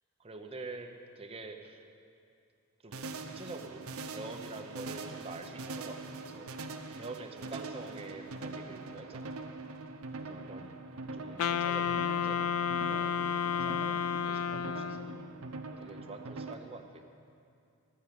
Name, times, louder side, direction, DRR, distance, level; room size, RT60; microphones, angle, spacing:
voice 1, 0.2-1.8 2.8-6.5 6.9-9.3 10.2-10.8 11.1-12.5 12.8-15.2 15.8-17.0, right 3 dB, 30° right, 4 dB, 0.7 m, -46 dB
sound 1, 2.9-16.5, right 3 dB, 85° right, 0.7 m, -43 dB
Wind instrument woodwind instrument, 11.4-15.3, left 7 dB, 90° left, 0.3 m, -31 dB
12.5 x 6.5 x 7.5 m, 2.4 s
head